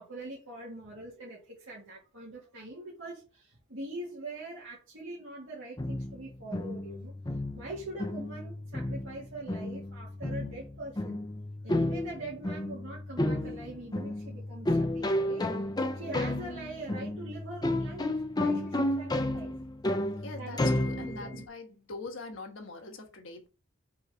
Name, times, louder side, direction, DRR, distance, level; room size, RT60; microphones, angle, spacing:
voice 1, 0.0-7.1 7.5-11.2 11.6-15.5 15.9-19.5 20.4-20.6 20.9-21.4, right 2 dB, 75° right, 2.3 m, -43 dB
sound 1, 5.8-21.5, left 1 dB, 20° left, 0.6 m, -32 dB
voice 2, 20.2-23.5, left 3 dB, 80° left, 1.3 m, -43 dB
4.8 x 4.0 x 5.0 m
head